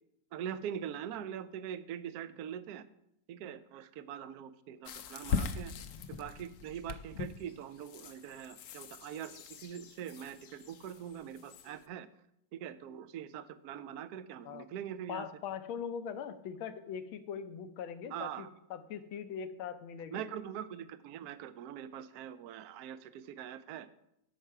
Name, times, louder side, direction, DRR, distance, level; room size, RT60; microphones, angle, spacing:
voice 1, 0.3-2.8 3.3-5.7 6.1-12.1 12.5-15.3 18.1-18.5 20.1-23.9, right 9 dB, 80° right, 13 dB, 0.8 m, -43 dB
sound 1, 4.9-11.8, left 5 dB, 65° left, 1.0 m, -41 dB
voice 2, 15.1-20.2, left 7 dB, 80° left, 10 dB, 1.5 m, -41 dB
13.0 x 5.9 x 4.6 m, 0.80 s
omnidirectional pair, 2.2 m